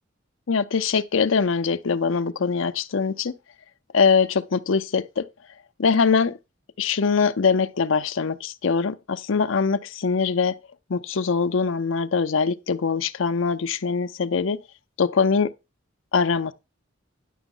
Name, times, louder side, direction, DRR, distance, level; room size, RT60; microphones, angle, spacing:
voice 1, 0.5-3.3 3.9-5.2 5.8-6.4 6.8-10.5 10.9-14.6 15.0-15.5 16.1-16.5, left 5 dB, 75° left, 0.6 m, -22 dB
10.0 x 6.0 x 3.8 m
head